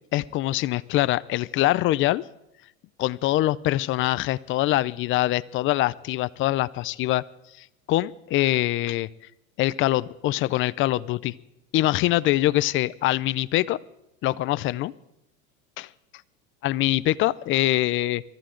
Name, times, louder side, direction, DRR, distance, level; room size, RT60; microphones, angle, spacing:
voice 1, 0.1-2.2 3.0-7.2 7.9-9.1 9.6-11.3 11.7-13.8 14.2-14.9 15.8-15.9 16.6-18.2, left 16 dB, 30° left, 19 dB, 0.4 m, -24 dB
23.0 x 14.0 x 3.8 m, 0.83 s
supercardioid pair, 120°, 42 cm